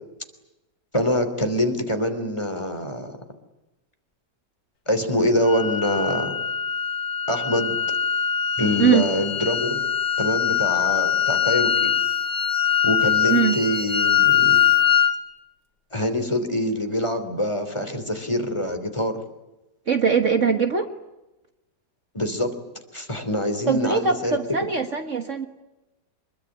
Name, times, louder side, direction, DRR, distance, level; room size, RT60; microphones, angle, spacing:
voice 1, 0.9-3.1 4.9-6.3 7.3-7.7 8.6-9.8 10.2-11.9 12.8-14.6 15.9-19.2 22.1-22.5 22.9-24.4, left 1 dB, 15° left, 6 dB, 3.2 m, -25 dB
sound 1, 5.5-15.1, left 9 dB, 60° left, 2.3 m, -22 dB
voice 2, 19.9-20.9 23.7-25.5, right 6 dB, 45° right, 6 dB, 1.7 m, -21 dB
25.5 x 22.0 x 9.8 m, 1.0 s
omnidirectional pair, 1.8 m